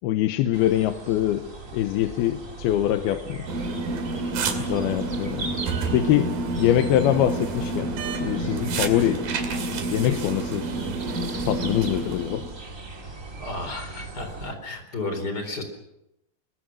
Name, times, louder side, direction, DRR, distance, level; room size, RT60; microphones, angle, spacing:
voice 1, 0.0-3.5 4.7-5.5 5.9-6.3 6.6-9.2 9.9-10.7 11.5-12.5, left 12 dB, 85° left, 7 dB, 2.9 m, -24 dB
sound 1, 0.5-14.5, right 3 dB, 25° right, 2.1 m, -39 dB
sound 2, 3.5-12.5, right 2 dB, 65° right, 4.0 m, -29 dB
voice 2, 13.4-15.6, left 2 dB, 25° left, 6 dB, 4.2 m, -32 dB
24.5 x 23.0 x 6.3 m, 0.88 s
omnidirectional pair, 4.4 m